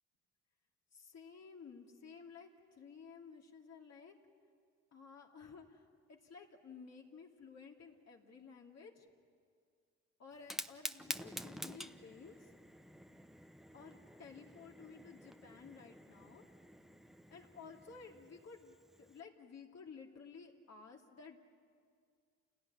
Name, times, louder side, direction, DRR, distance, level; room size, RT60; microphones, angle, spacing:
voice 1, 0.9-4.1 4.9-9.1 10.2-12.5 13.7-16.4 17.3-21.4, left 5 dB, 60° left, 0 dB, 2.8 m, -54 dB
Fire, 10.3-19.2, equal, ahead, 0.9 m, -49 dB
28.0 x 17.5 x 10.0 m, 2.1 s
cardioid pair, 90°, 30 cm